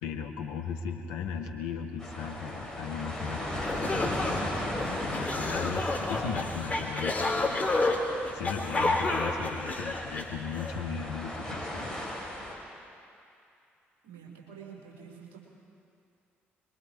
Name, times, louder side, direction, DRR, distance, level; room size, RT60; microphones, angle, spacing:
voice 1, 0.0-4.4 5.0-12.0, left 6 dB, 65° left, 3 dB, 1.5 m, -37 dB
sound 1, 2.0-12.5, left 1 dB, 10° left, 6.3 m, -37 dB
sound 2, 3.3-3.4 3.6-10.7, left 2 dB, 25° left, 3.2 m, -30 dB
voice 2, 14.0-15.4, right 7 dB, 70° right, -2 dB, 4.4 m, -47 dB
26.0 x 23.0 x 4.6 m, 2.5 s
figure-of-eight pair, 45°, 6 cm